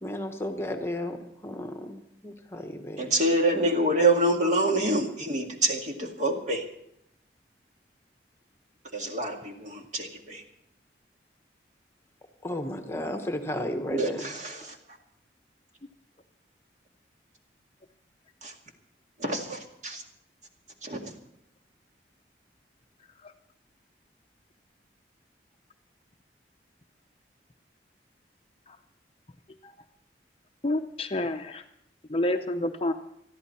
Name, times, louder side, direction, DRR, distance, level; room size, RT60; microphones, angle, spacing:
voice 1, 0.0-3.1 12.4-14.3, left 1 dB, 15° left, 6 dB, 1.1 m, -34 dB
voice 2, 3.0-6.6 8.9-10.4 13.9-14.8 18.4-18.5 19.2-20.0 20.8-21.1, right 1 dB, 40° right, 2 dB, 2.0 m, -26 dB
voice 3, 30.6-31.6 32.1-32.9, left 1 dB, 30° left, 7 dB, 0.6 m, -28 dB
21.0 x 13.5 x 4.3 m, 0.77 s
head